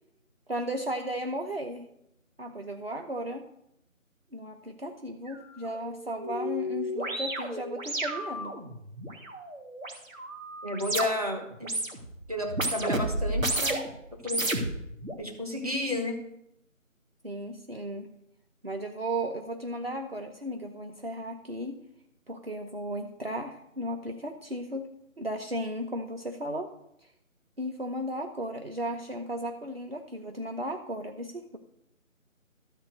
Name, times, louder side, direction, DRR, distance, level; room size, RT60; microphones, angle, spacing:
voice 1, 0.5-1.9 2.4-3.4 4.3-8.5 17.2-18.1 18.6-21.8 22.3-26.7 27.0-27.1 27.6-31.6, right 1 dB, 45° right, 4 dB, 0.9 m, -35 dB
sound 1, 5.3-5.4 5.7-11.3 11.6-12.1 12.5-13.9 14.2-15.1, right 1 dB, 75° right, 2.6 m, -32 dB
voice 2, 10.6-11.7 12.3-13.8 14.1-14.5 15.2-16.2, left 1 dB, 30° right, 3 dB, 1.4 m, -32 dB
13.0 x 4.4 x 7.8 m, 0.80 s
figure-of-eight pair, 180°, 40 cm